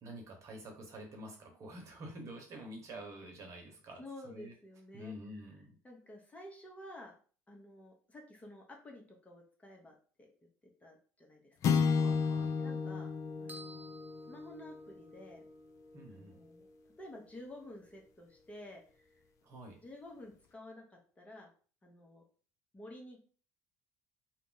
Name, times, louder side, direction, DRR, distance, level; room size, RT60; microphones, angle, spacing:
voice 1, 0.0-4.5 4.9-5.8 11.9-12.6 15.9-16.4 19.4-19.8, right 1 dB, 45° right, 2 dB, 0.9 m, -48 dB
voice 2, 4.0-5.1 5.8-7.2 7.5-10.3 10.8-11.8 12.6-13.1 13.4-13.9 14.3-15.4 16.1-16.7 17.0-19.2 19.8-21.5 21.8-22.2 22.7-23.2, left 1 dB, 20° left, 0 dB, 0.8 m, -51 dB
sound 1, 11.6-16.1, left 5 dB, 50° left, 0.4 m, -33 dB
sound 2, 13.5-15.3, right 1 dB, 25° right, 0.5 m, -54 dB
2.5 x 2.0 x 3.8 m, 0.41 s
supercardioid pair, 100°, 7 cm